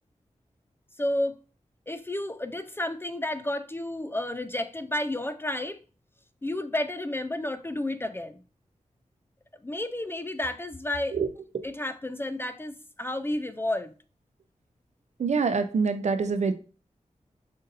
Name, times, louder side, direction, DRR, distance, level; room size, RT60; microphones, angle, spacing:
voice 1, 1.0-1.4 1.9-5.8 6.4-8.4 9.6-11.2 11.6-13.9, left 1 dB, 15° left, 0.3 m, -31 dB
voice 2, 15.2-16.5, right 5 dB, 60° right, 0.4 m, -25 dB
5.2 x 2.6 x 2.5 m
wide cardioid pair, 70°, 13 cm